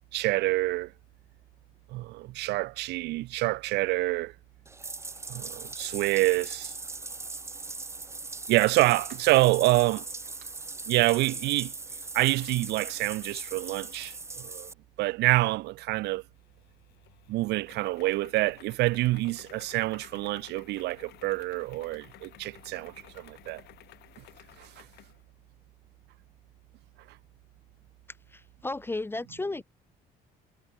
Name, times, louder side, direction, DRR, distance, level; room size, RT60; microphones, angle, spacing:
voice 1, 0.1-0.9 1.9-4.3 5.3-6.7 8.5-10.0 10.9-11.7 12.1-14.7 15.0-16.2 17.3-23.6 24.6-24.7, right 19 dB, 85° right, 1.2 m, -27 dB
Bathtub (filling or washing), 4.6-14.7, right 3 dB, 15° right, 1.2 m, -40 dB
sound 1, 16.4-25.2, left 16 dB, 75° left, 4.0 m, -54 dB
voice 2, 28.3-29.6, left 2 dB, 15° left, 0.7 m, -34 dB
cardioid pair, 110°, 17 cm